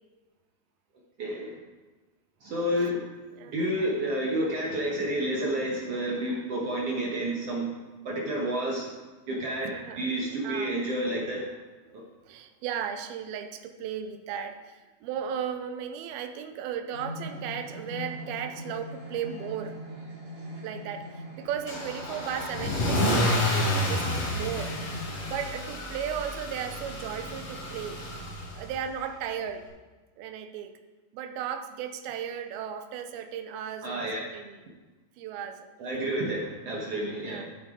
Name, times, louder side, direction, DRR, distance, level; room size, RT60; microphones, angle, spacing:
voice 1, 1.2-1.5 2.4-3.0 3.5-7.8 8.0-9.0 9.3-11.5 11.9-12.0 33.8-34.2 35.8-37.4, right 1 dB, 60° right, -2 dB, 1.6 m, -30 dB
voice 2, 9.7-10.1 10.4-10.8 11.9-19.8 20.6-23.6 23.8-24.7 25.3-28.0 28.6-29.7 30.2-30.7 31.1-34.6 35.2-35.7 37.2-37.4, right 8 dB, 85° right, 7 dB, 2.6 m, -35 dB
sound 1, 16.9-25.3, left 1 dB, 40° right, 3.4 m, -41 dB
Car / Engine starting / Accelerating revving vroom, 21.7-28.8, left 1 dB, 75° left, 5.0 m, -30 dB
12.0 x 8.2 x 3.7 m, 1.2 s
omnidirectional pair, 4.3 m